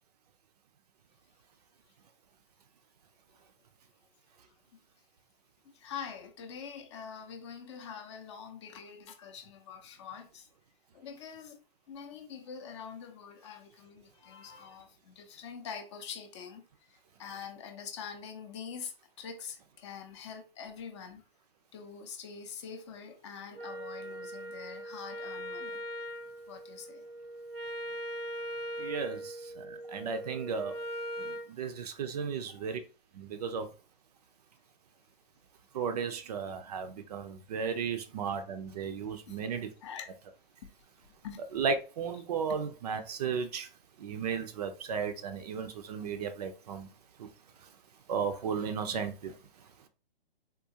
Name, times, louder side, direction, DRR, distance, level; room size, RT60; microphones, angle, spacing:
voice 1, 5.8-10.5 10.9-11.6 11.9-16.6 17.2-18.9 19.2-21.2 21.7-25.8 26.5-27.0 39.3-39.4 39.8-40.1 41.2-41.4, left 7 dB, 30° left, 0.5 m, -44 dB
Wind instrument woodwind instrument, 23.5-31.5, equal, 80° right, 0.8 m, -40 dB
voice 2, 28.8-30.8 31.2-32.8 33.1-33.7 35.7-39.7 41.4-43.7 44.0-46.9 47.2-47.3 47.6-47.7 48.1-49.4, right 6 dB, 45° right, 0.5 m, -35 dB
3.6 x 2.4 x 2.7 m
hypercardioid pair, 130°, 29 cm